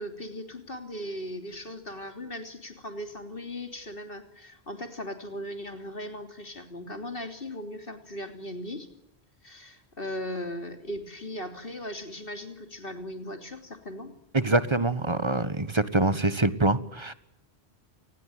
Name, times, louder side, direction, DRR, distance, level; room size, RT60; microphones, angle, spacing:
voice 1, 0.0-8.9 9.4-14.1, left 1 dB, 55° left, 6 dB, 3.6 m, -38 dB
voice 2, 14.3-17.1, right 2 dB, 25° right, 13 dB, 1.4 m, -25 dB
28.0 x 20.5 x 9.5 m, 0.80 s
omnidirectional pair, 1.1 m